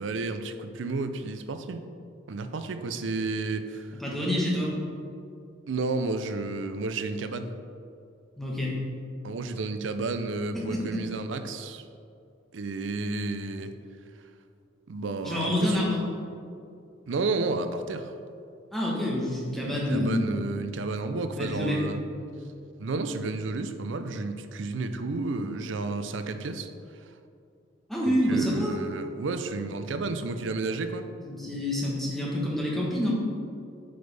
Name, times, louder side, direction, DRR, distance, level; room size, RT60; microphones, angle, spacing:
voice 1, 0.0-1.9 2.3-3.9 5.7-7.5 9.2-11.8 12.5-13.7 14.9-15.8 17.1-18.1 19.7-22.0 22.8-26.7 28.1-31.1, right 3 dB, 70° right, 9 dB, 0.5 m, -31 dB
voice 2, 4.0-4.8 8.4-8.8 10.5-11.0 15.2-16.0 18.7-20.4 21.3-21.8 27.9-28.7 31.2-33.1, left 1 dB, ahead, -5 dB, 1.2 m, -27 dB
7.9 x 5.2 x 3.4 m, 2.5 s
head